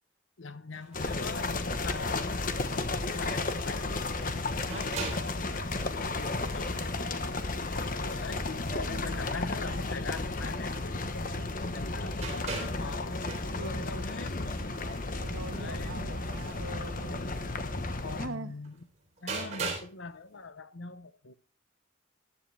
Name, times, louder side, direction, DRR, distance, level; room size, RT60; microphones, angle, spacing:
voice 1, 0.4-2.5 2.9-14.4 15.5-16.0 18.0-18.8 19.2-21.3, left 3 dB, 80° left, 1.0 m, -43 dB
sound 1, 0.7-11.5 11.7-20.0 20.3-20.4, right 4 dB, 35° right, 4.1 m, -44 dB
sound 2, 0.9-18.3, left 3 dB, 45° left, 1.2 m, -33 dB
voice 2, 8.9-9.2 13.5-13.9 15.1-17.3 18.2-18.5, right 2 dB, 85° right, 1.4 m, -42 dB
14.5 x 11.0 x 3.4 m
head